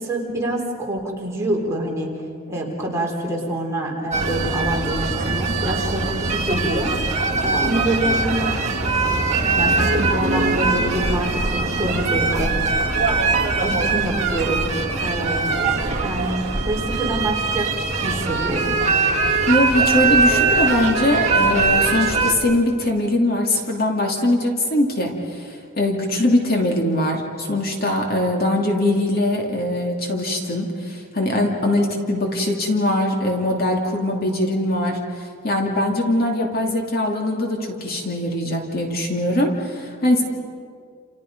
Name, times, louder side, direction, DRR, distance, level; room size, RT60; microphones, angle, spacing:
voice 1, 0.0-2.1 2.5-12.8 13.6-15.5 16.0-18.8, right 1 dB, 15° right, -3 dB, 4.1 m, -26 dB
sound 1, 4.1-22.3, right 3 dB, 30° right, 2.5 m, -21 dB
voice 2, 19.5-40.2, left 1 dB, 45° left, 1 dB, 2.7 m, -21 dB
29.5 x 29.0 x 5.4 m, 2.2 s
head